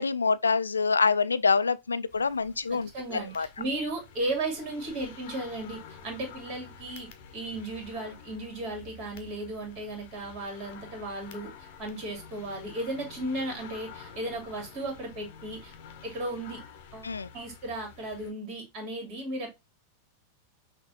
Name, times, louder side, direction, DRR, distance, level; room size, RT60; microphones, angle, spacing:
voice 1, 0.0-3.5 17.0-17.3, left 4 dB, 75° left, 0.3 m, -26 dB
sound 1, 2.1-18.3, left 6 dB, 50° left, 0.8 m, -49 dB
voice 2, 2.9-7.1 7.3-11.5 11.8-15.7 16.0-16.6 16.9-19.5, right 2 dB, 40° right, 2.1 m, -35 dB
5.9 x 2.6 x 2.7 m
figure-of-eight pair, 90°, 0 cm